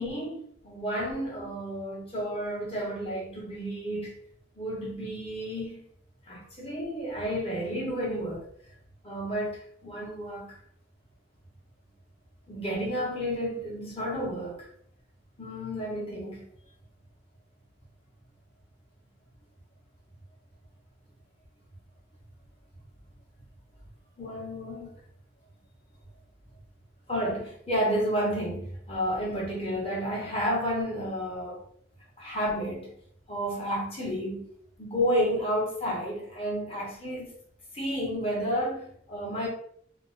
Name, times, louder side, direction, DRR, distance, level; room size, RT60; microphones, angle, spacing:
voice 1, 0.0-4.2 4.5-5.8 6.3-8.5 9.0-10.6 12.5-14.7 15.4-16.5 24.2-25.0 27.1-31.6 32.2-32.9 33.3-34.4 34.8-37.3 37.7-39.5, equal, 30° left, 1.0 m, -31 dB
2.7 x 2.1 x 3.7 m
head